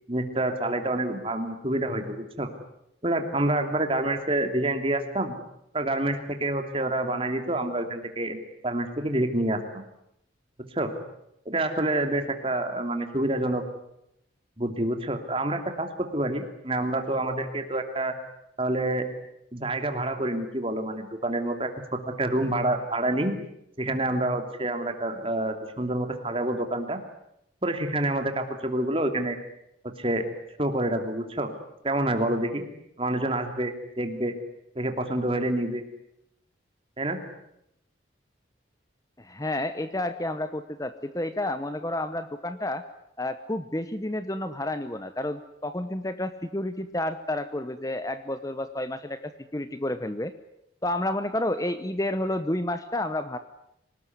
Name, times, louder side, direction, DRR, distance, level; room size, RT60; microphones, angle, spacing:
voice 1, 0.1-2.5 3.0-5.4 5.7-8.4 8.6-9.8 10.6-11.0 11.5-13.6 14.6-18.1 18.6-19.1 19.5-23.4 23.8-27.0 27.6-29.4 29.8-30.2 30.6-31.5 31.8-32.6 33.0-34.3 34.7-35.8 37.0-37.2, right 1 dB, 30° right, 6 dB, 2.9 m, -27 dB
voice 2, 39.2-42.8 43.2-50.3 50.8-53.4, left 1 dB, 20° left, 10 dB, 1.0 m, -30 dB
26.0 x 19.0 x 9.6 m, 0.80 s
head